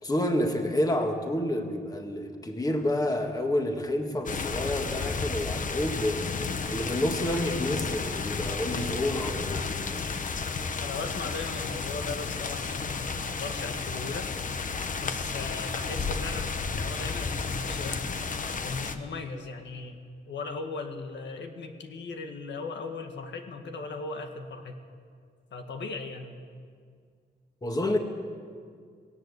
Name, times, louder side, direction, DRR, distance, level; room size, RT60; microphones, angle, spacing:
voice 1, 0.0-6.2 6.7-9.7 27.6-28.0, left 1 dB, 20° left, 4 dB, 1.7 m, -29 dB
sound 1, 4.3-19.0, left 4 dB, 45° left, 1.0 m, -32 dB
voice 2, 10.8-14.3 15.0-18.1 18.6-20.0 20.3-24.7 25.5-26.4, left 4 dB, 85° left, 5 dB, 1.7 m, -37 dB
18.0 x 18.0 x 8.2 m, 2.1 s
wide cardioid pair, 145°, 18 cm